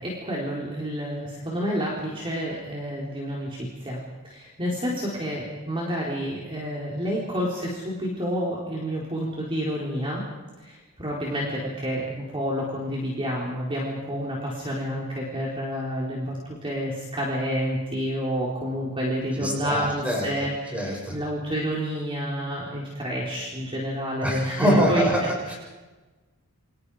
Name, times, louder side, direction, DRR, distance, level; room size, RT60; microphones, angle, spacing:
voice 1, 0.3-3.5 3.9-4.0 4.6-4.9 5.2-7.5 7.8-10.2 11.0-11.5 11.8-14.4 14.6-15.0 15.3-16.2 16.6-16.9 17.2-20.5 21.1-25.0 25.5-25.6, equal, 25° right, -4 dB, 4.5 m, -29 dB
voice 2, 19.4-20.3 20.7-21.2 24.2-25.5, equal, 5° right, -2 dB, 7.3 m, -24 dB
30.0 x 26.0 x 5.1 m, 1.2 s
head